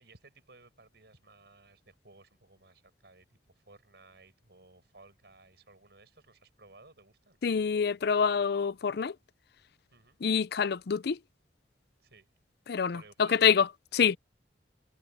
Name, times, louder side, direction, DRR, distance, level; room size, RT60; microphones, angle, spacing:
voice 1, 0.0-7.4 9.9-10.2 12.0-12.3 12.9-13.6, right 3 dB, 65° right, 7.1 m, -58 dB
voice 2, 7.4-9.2 10.2-11.2 12.7-14.2, left 6 dB, 65° left, 0.5 m, -26 dB
head